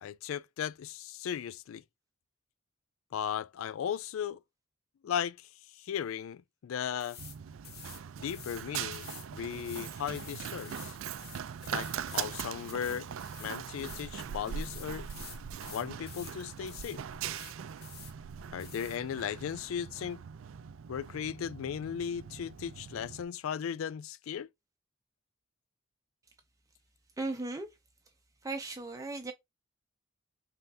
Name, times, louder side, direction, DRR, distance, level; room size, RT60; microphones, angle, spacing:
voice 1, 0.0-1.8 3.1-4.4 5.0-5.5 5.8-7.2 8.2-11.0 11.7-13.1 13.4-15.1 15.6-17.0 18.5-20.2 20.9-24.5, left 8 dB, 85° left, 0.3 m, -36 dB
sound 1, 7.0-7.4 7.6-8.6 8.9-14.1 14.4-16.4 16.7-17.0 17.2-18.1 18.6-19.0, left 7 dB, 50° left, 1.1 m, -50 dB
Run, 7.2-23.2, right 8 dB, 75° right, 0.4 m, -41 dB
voice 2, 27.2-27.7 28.4-29.3, right 2 dB, 15° right, 0.6 m, -36 dB
5.5 x 3.4 x 2.7 m
head